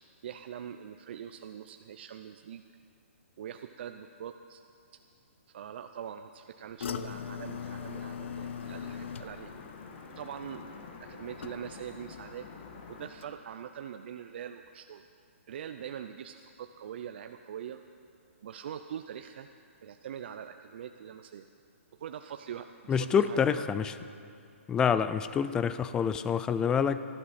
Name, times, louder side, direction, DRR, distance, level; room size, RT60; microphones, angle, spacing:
voice 1, 0.2-2.6 3.4-4.6 5.5-9.5 10.2-10.6 11.0-12.5 12.9-15.0 15.5-17.8 18.4-19.5 19.8-21.4 22.0-23.7, right 9 dB, 50° right, 7 dB, 0.5 m, -43 dB
sound 1, 6.8-12.0 12.3-12.8 13.2-13.3, left 8 dB, 60° left, 0.6 m, -41 dB
sound 2, 7.1-13.1, left 4 dB, 40° left, 1.6 m, -47 dB
voice 2, 22.9-23.9 24.7-27.0, left 7 dB, 10° left, 13 dB, 0.3 m, -27 dB
18.5 x 13.0 x 4.2 m, 2.4 s
hypercardioid pair, 155°, 7 cm